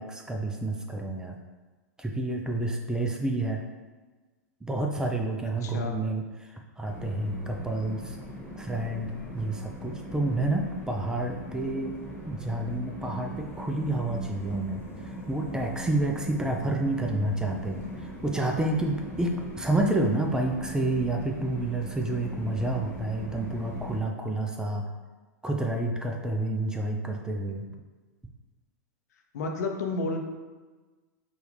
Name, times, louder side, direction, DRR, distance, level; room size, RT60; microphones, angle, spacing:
voice 1, 0.0-1.4 2.0-3.7 4.6-8.2 8.6-12.0 12.3-14.8 15.3-24.9 25.4-27.6, right 2 dB, 10° right, 2 dB, 0.4 m, -29 dB
voice 2, 5.6-5.9 29.3-30.2, left 3 dB, 70° left, 3 dB, 0.6 m, -30 dB
sound 1, 6.8-24.0, equal, 20° left, 1.3 m, -40 dB
4.9 x 2.4 x 3.2 m, 1.3 s
hypercardioid pair, 105°, 9 cm